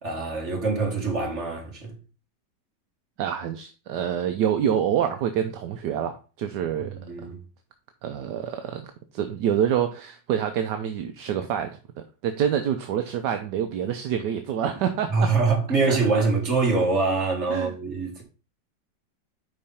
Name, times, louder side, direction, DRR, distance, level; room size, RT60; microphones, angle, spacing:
voice 1, 0.0-2.0 6.9-7.4 15.1-18.2, right 4 dB, 40° right, 2.3 m, -24 dB
voice 2, 3.2-6.9 8.0-15.3 15.9-16.2 17.5-17.7, right 9 dB, 75° right, 1.2 m, -27 dB
5.3 x 4.6 x 5.6 m
omnidirectional pair, 2.0 m